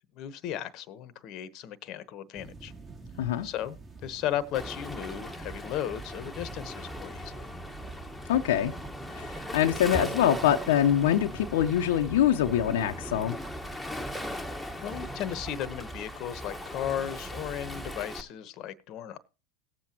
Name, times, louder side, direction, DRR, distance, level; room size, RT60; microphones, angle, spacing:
voice 1, 0.2-2.7 3.4-7.5 14.8-19.2, left 11 dB, 50° left, 1.0 m, -35 dB
sound 1, 2.3-13.2, right 3 dB, 25° right, 2.5 m, -48 dB
Waves surf, 4.5-18.2, equal, ahead, 1.4 m, -39 dB
voice 2, 8.3-8.7 9.1-13.4, left 10 dB, 75° left, 0.8 m, -24 dB
18.0 x 7.6 x 2.9 m
hypercardioid pair, 95°, 0 cm